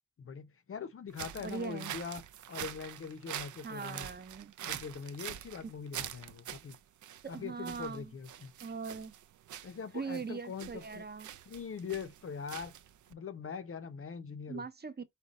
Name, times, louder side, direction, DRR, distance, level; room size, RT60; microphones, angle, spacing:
voice 1, 0.2-2.2 2.5-4.1 4.6-6.8 7.3-8.5 9.6-11.0 11.5-12.7 13.1-14.7, left 6 dB, 50° left, 0.6 m, -42 dB
sound 1, 1.1-13.1, right 11 dB, 80° right, 0.5 m, -45 dB
voice 2, 1.4-1.9 3.6-4.5 7.2-8.1 8.6-9.1 9.9-11.3 14.5-15.0, right 5 dB, 35° right, 0.6 m, -41 dB
5.1 x 2.2 x 3.9 m
wide cardioid pair, 135°, 30 cm